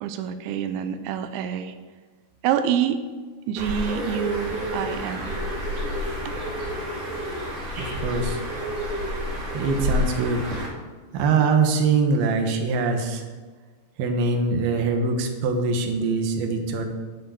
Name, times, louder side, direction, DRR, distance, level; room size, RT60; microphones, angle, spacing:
voice 1, 0.0-1.7 2.4-3.0 3.5-5.4, right 9 dB, 85° right, 9 dB, 3.0 m, -27 dB
Bird, 3.6-10.7, left 1 dB, 50° right, 3.5 m, -29 dB
voice 2, 7.8-8.8 9.5-10.7 11.1-13.2 14.0-16.8, right 4 dB, 70° right, 4 dB, 2.8 m, -23 dB
10.5 x 6.7 x 8.3 m, 1.4 s
omnidirectional pair, 5.2 m